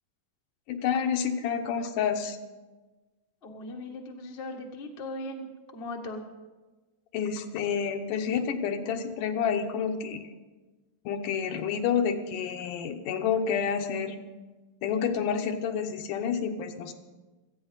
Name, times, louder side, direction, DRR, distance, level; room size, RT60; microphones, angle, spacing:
voice 1, 0.7-2.4 7.1-10.2 11.1-14.2 14.8-16.9, left 7 dB, 80° left, 6 dB, 2.5 m, -29 dB
voice 2, 3.4-5.5 5.7-6.2, left 1 dB, 45° left, 1 dB, 0.7 m, -38 dB
18.0 x 14.5 x 4.0 m, 1.2 s
omnidirectional pair, 3.8 m